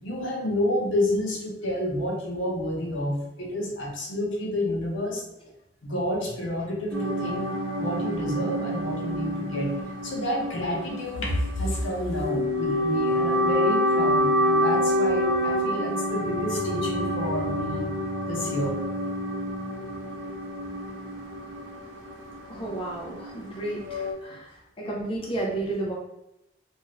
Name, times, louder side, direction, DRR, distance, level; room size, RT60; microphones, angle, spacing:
voice 1, 0.0-5.2 5.8-7.5 7.8-9.7 10.0-17.9 18.3-18.8, left 1 dB, 75° left, -2 dB, 0.7 m, -29 dB
sound 1, 6.9-24.1, equal, 70° right, 0.7 m, -28 dB
voice 2, 22.5-24.5 24.8-25.9, right 2 dB, 30° left, -4 dB, 0.6 m, -32 dB
2.6 x 2.4 x 3.1 m, 0.87 s
head